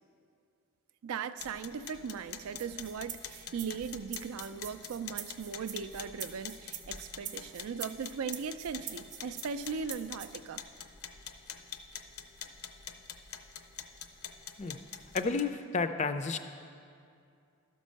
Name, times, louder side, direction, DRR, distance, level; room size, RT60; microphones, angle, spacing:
voice 1, 1.0-10.6, right 6 dB, 80° right, 13 dB, 0.4 m, -38 dB
sound 1, 1.4-15.4, left 7 dB, 75° left, 0.6 m, -46 dB
sound 2, 2.6-10.3, right 9 dB, 35° right, 0.6 m, -44 dB
voice 2, 15.1-16.4, left 4 dB, 30° left, 9 dB, 0.3 m, -31 dB
12.5 x 5.3 x 6.3 m, 2.4 s
head